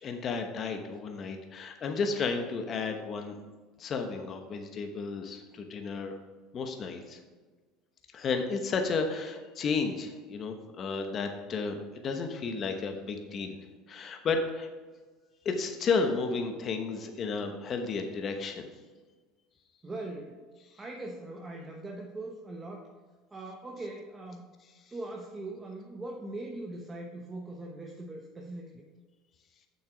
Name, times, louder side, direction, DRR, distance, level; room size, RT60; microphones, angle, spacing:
voice 1, 0.0-3.4 3.8-6.2 6.5-7.2 8.1-13.6 13.9-14.7 15.4-18.7, left 4 dB, 40° left, 5 dB, 1.0 m, -32 dB
voice 2, 19.8-20.4 20.8-22.9 23.3-24.4 24.9-28.8, right 2 dB, 20° right, 1 dB, 1.0 m, -41 dB
7.2 x 6.1 x 5.1 m, 1.4 s
supercardioid pair, 100°, 0 cm